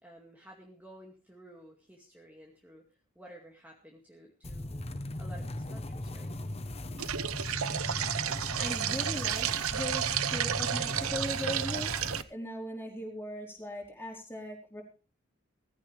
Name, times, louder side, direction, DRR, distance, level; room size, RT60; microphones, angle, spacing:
voice 1, 0.0-4.8 5.2-6.4, right 1 dB, 10° right, -1 dB, 2.3 m, -53 dB
sound 1, 4.4-12.2, left 1 dB, 30° left, 1.1 m, -38 dB
sound 2, 7.0-12.2, right 10 dB, 90° right, 0.8 m, -32 dB
voice 2, 8.6-14.8, left 1 dB, 10° left, 0 dB, 4.3 m, -39 dB
18.0 x 15.5 x 3.4 m, 0.36 s
head